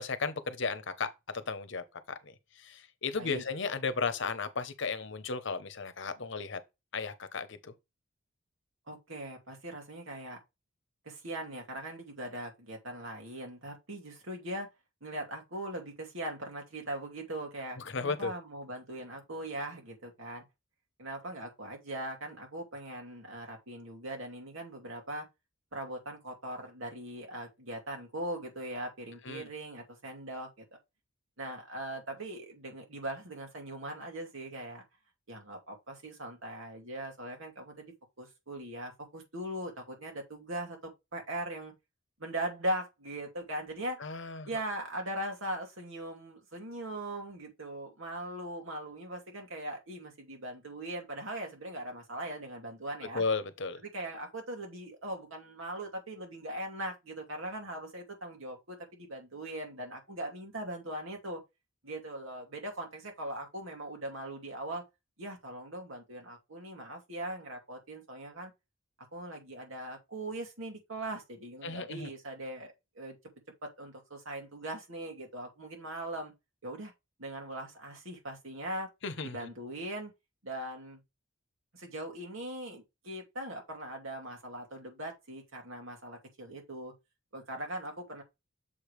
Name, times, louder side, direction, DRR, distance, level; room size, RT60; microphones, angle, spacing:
voice 1, 0.0-6.6 6.9-7.7 17.9-18.3 29.2-29.5 44.0-44.5 53.1-53.8 71.6-72.1 79.0-79.4, left 4 dB, 65° left, 0.9 m, -35 dB
voice 2, 8.9-10.4 11.0-14.7 15.0-20.4 21.0-25.3 25.7-30.5 31.4-34.8 35.3-41.7 42.2-44.0 44.5-53.2 53.8-61.4 61.8-64.8 65.2-68.5 69.1-73.2 73.6-76.3 76.6-76.9 77.2-78.9 79.2-80.1 80.4-81.0 81.7-86.9 87.3-88.2, right 1 dB, 85° right, 2.6 m, -40 dB
7.1 x 3.3 x 4.9 m
head